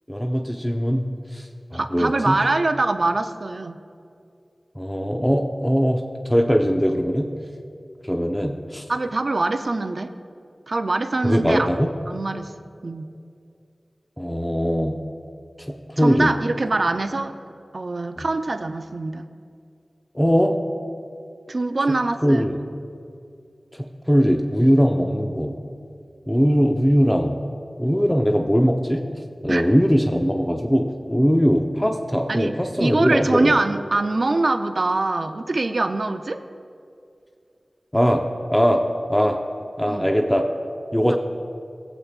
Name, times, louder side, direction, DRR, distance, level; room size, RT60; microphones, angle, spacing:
voice 1, 0.1-1.5 1.7-2.4 4.8-7.3 8.0-8.8 11.2-11.9 14.2-15.0 16.0-16.3 18.2-18.3 20.1-20.5 22.2-22.6 23.8-25.6 26.3-27.4 27.8-29.0 29.4-33.5 37.9-38.2 38.5-38.8 39.1-39.4 39.8-40.4 40.9-41.2, equal, 10° left, 2 dB, 0.7 m, -20 dB
voice 2, 1.7-3.8 8.9-10.1 10.7-11.7 12.1-12.5 12.8-13.1 16.0-17.4 17.7-19.3 21.5-22.5 29.5-29.7 32.3-36.4 39.8-40.1 41.0-41.2, right 2 dB, 65° right, 7 dB, 0.5 m, -24 dB
18.5 x 8.1 x 2.4 m, 2.4 s
cardioid pair, 45°, 0 cm